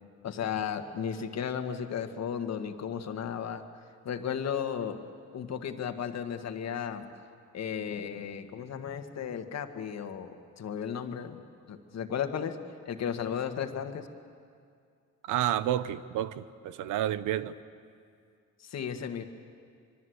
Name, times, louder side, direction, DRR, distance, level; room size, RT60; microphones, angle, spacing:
voice 1, 0.2-3.6 4.0-5.0 5.3-7.1 7.5-11.4 11.7-12.6 12.9-14.1 18.6-19.2, left 8 dB, 60° left, 7 dB, 1.7 m, -34 dB
voice 2, 15.3-17.6, right 12 dB, 90° right, 14 dB, 0.9 m, -30 dB
25.0 x 23.5 x 8.0 m, 2.3 s
cardioid pair, 90°, 30 cm